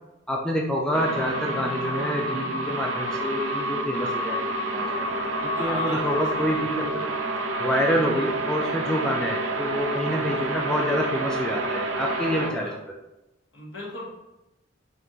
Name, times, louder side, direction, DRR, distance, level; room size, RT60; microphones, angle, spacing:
voice 1, 0.3-5.1 5.6-7.1 7.6-12.7, equal, 5° left, -1 dB, 0.3 m, -27 dB
sound 1, 0.9-12.5, right 1 dB, 80° right, 0.6 m, -28 dB
voice 2, 5.4-6.0 6.3-7.1 10.0-10.3 12.4-12.8 13.5-14.1, left 2 dB, 75° left, -4 dB, 1.5 m, -37 dB
5.0 x 2.5 x 3.0 m, 0.96 s
head